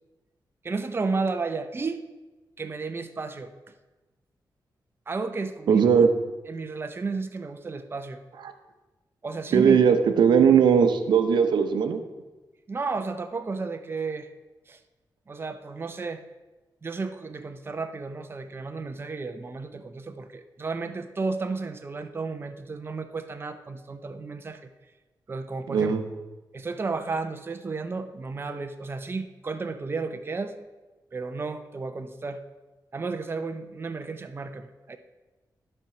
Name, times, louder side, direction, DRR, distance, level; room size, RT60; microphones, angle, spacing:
voice 1, 0.6-2.0 2.6-3.5 5.1-5.9 6.5-8.2 9.2-9.8 12.7-14.3 14.7-14.8 15.3-16.2 16.8-24.6 25.3-25.9 26.5-30.5 31.1-32.4 32.9-35.0, right 4 dB, 30° right, 8 dB, 0.6 m, -32 dB
voice 2, 5.7-6.1 9.5-12.0 25.7-26.0, right 7 dB, 90° right, 8 dB, 0.8 m, -19 dB
11.5 x 4.4 x 5.9 m, 1.1 s
cardioid pair, 95°, 7 cm